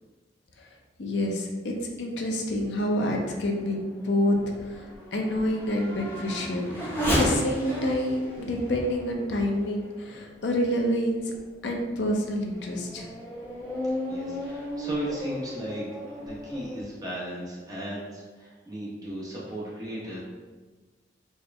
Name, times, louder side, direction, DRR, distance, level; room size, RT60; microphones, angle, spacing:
voice 1, 1.0-11.3 11.6-13.1, left 1 dB, 75° left, 1 dB, 0.6 m, -28 dB
Race car auto racing / Accelerating revving vroom, 2.8-10.7 11.3-11.4 12.0-16.8, equal, 10° left, 0.9 m, -34 dB
voice 2, 14.1-20.2, right 1 dB, 20° right, -7 dB, 0.9 m, -36 dB
4.3 x 2.2 x 3.4 m, 1.3 s
head